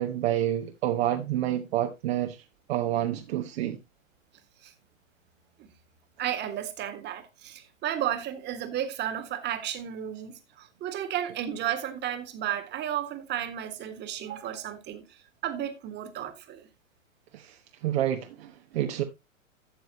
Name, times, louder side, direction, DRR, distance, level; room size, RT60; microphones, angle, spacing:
voice 1, 0.0-3.8 17.3-19.0, right 12 dB, 50° right, 1.1 m, -29 dB
voice 2, 6.2-16.7, right 10 dB, 25° right, 1.7 m, -33 dB
12.5 x 7.9 x 3.0 m
figure-of-eight pair, 105°, 41 cm